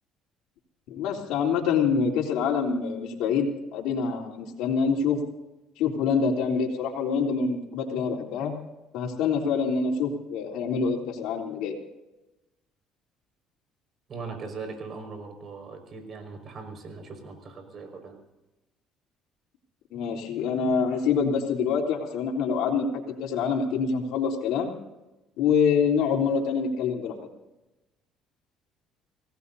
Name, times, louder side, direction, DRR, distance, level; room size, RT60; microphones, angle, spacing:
voice 1, 0.9-5.2 5.8-8.5 8.9-11.7 19.9-22.9 23.2-24.7 25.4-27.1, left 6 dB, 80° left, 1 dB, 3.5 m, -26 dB
voice 2, 14.1-18.2, right 4 dB, 45° right, 5 dB, 5.6 m, -40 dB
25.5 x 18.0 x 2.8 m, 0.99 s
cardioid pair, 100°, 0 cm